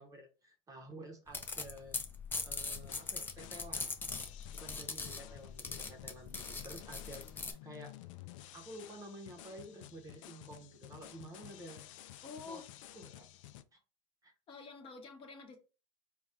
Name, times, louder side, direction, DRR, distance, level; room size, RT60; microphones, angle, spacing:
voice 1, 0.0-2.0 2.4-3.9 4.5-8.0 8.5-11.8 12.5-12.6 12.9-13.3 13.7-13.8 14.2-14.3, right 1 dB, 20° right, 0.8 m, -51 dB
sound 1, 1.3-7.5, left 4 dB, 10° left, 0.5 m, -41 dB
sound 2, 2.7-13.6, left 13 dB, 70° left, 0.4 m, -53 dB
voice 2, 12.2-12.6 14.5-15.6, left 4 dB, 30° left, 1.0 m, -48 dB
4.0 x 2.3 x 3.6 m
supercardioid pair, 120°, 17 cm